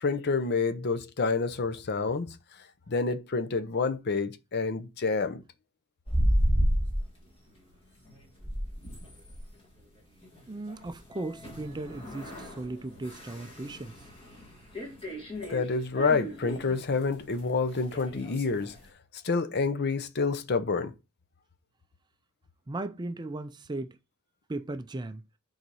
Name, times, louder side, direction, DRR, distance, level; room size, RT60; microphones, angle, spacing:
voice 1, 0.0-2.4 2.9-5.4 15.4-18.7 19.2-20.9, left 4 dB, 50° left, 0.7 m, -28 dB
sound 1, 6.1-7.1 7.6-7.8 8.1-18.8, equal, 25° left, 1.9 m, -33 dB
voice 2, 10.5-14.0 22.7-24.0 24.5-25.2, right 2 dB, 20° right, 0.4 m, -37 dB
6.8 x 4.0 x 4.7 m
head